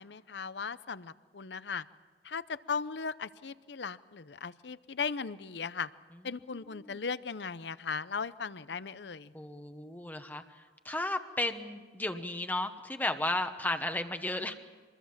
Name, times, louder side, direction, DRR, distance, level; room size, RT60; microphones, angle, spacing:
voice 1, 0.0-1.8 2.2-5.9 6.2-9.3, left 5 dB, 70° left, 15 dB, 0.7 m, -37 dB
voice 2, 9.3-10.4 10.8-14.6, left 2 dB, 10° left, 7 dB, 1.1 m, -34 dB
26.0 x 21.0 x 7.3 m, 1.4 s
head